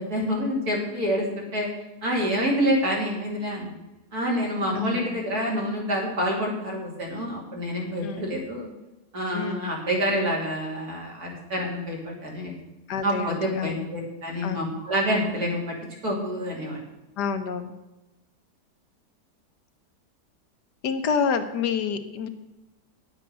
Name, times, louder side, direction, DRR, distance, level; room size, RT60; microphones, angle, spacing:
voice 1, 0.0-1.7 2.0-3.7 4.1-8.7 9.1-12.5 13.0-15.7 16.0-16.8, equal, 60° right, -2 dB, 3.4 m, -27 dB
voice 2, 4.7-5.2 8.0-8.3 9.3-9.7 12.9-13.9 14.4-14.8 17.2-17.7 20.8-22.3, left 6 dB, 75° left, 8 dB, 1.5 m, -28 dB
10.5 x 7.7 x 6.8 m, 1.0 s
omnidirectional pair, 1.8 m